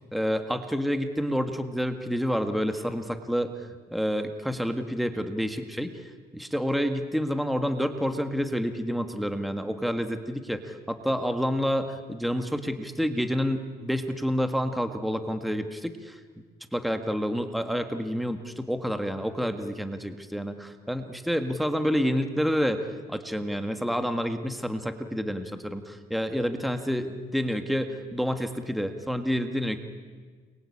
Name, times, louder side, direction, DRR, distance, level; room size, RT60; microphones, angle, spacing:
voice 1, 0.1-6.0 6.3-16.2 16.7-29.8, equal, ahead, 7 dB, 1.7 m, -29 dB
29.5 x 23.0 x 8.7 m, 1.5 s
cardioid pair, 110°, 17 cm